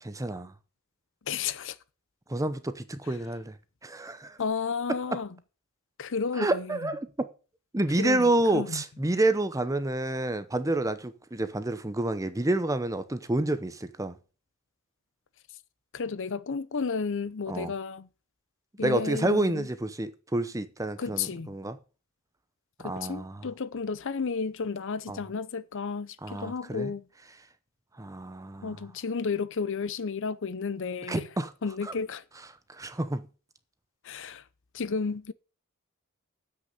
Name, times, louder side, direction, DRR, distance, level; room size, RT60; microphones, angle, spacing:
voice 1, 0.0-0.5 2.3-3.6 3.8-4.4 6.4-7.3 7.7-14.2 17.5-17.7 18.8-21.8 22.8-23.5 25.1-25.2 26.2-26.9 28.0-28.8 31.1-31.5 31.8-31.9 32.7-33.2, right 2 dB, 15° right, 0.7 m, -29 dB
voice 2, 1.3-1.8 4.4-5.3 6.0-6.9 8.0-8.8 15.9-18.1 18.8-19.7 21.0-21.5 22.8-27.0 28.6-31.3 31.6-32.2 34.0-34.4 34.7-35.3, left 5 dB, 60° left, 0.6 m, -32 dB
8.0 x 6.4 x 8.1 m
head